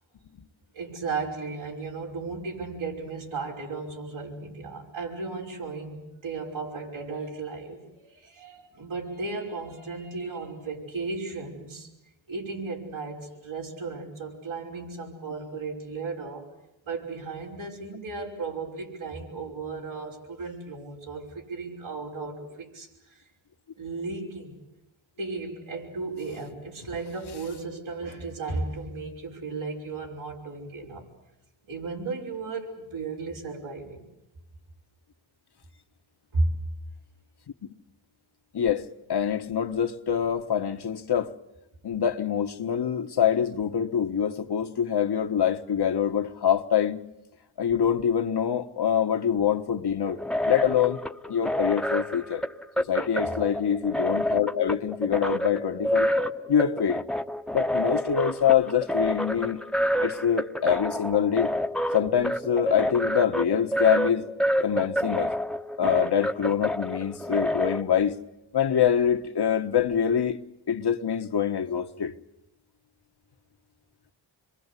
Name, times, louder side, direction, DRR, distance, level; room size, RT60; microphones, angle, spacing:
voice 1, 0.7-11.9 12.3-16.5 16.9-22.9 23.8-24.5 25.2-31.1 31.7-34.0 36.3-36.6, right 3 dB, 85° right, 5.8 m, -35 dB
voice 2, 38.5-41.3 41.8-47.1 47.6-50.2 50.5-51.0 51.3-52.4 52.8-56.1 56.5-57.0 57.5-59.6 60.0-61.5 61.9-64.3 64.6-65.3 65.8-68.2 68.5-70.4 70.7-72.1, left 8 dB, 55° left, 1.4 m, -25 dB
sound 1, 50.1-67.8, equal, ahead, 1.1 m, -28 dB
27.0 x 23.0 x 8.3 m
cardioid pair, 50°, 47 cm